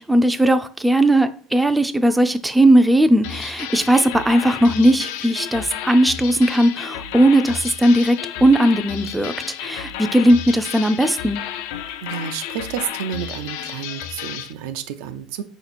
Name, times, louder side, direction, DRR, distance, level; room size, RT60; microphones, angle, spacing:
voice 1, 0.0-9.3 9.6-11.4, right 1 dB, 5° right, 0.3 m, -17 dB
sound 1, 3.2-14.5, left 10 dB, 80° left, 0.4 m, -32 dB
voice 2, 12.0-15.4, right 9 dB, 80° right, 0.5 m, -30 dB
4.3 x 2.9 x 4.0 m
cardioid pair, 130°, 0 cm